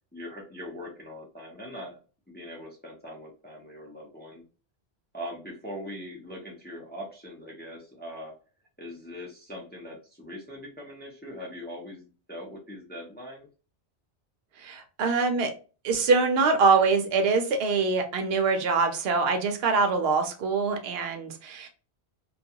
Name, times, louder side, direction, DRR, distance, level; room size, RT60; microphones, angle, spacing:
voice 1, 0.1-2.0 2.3-4.4 5.1-8.3 8.8-13.5, equal, 15° left, -2 dB, 0.4 m, -41 dB
voice 2, 14.6-15.5 15.8-21.7, right 4 dB, 65° right, 5 dB, 0.8 m, -24 dB
2.3 x 2.2 x 2.7 m, 0.35 s
omnidirectional pair, 1.2 m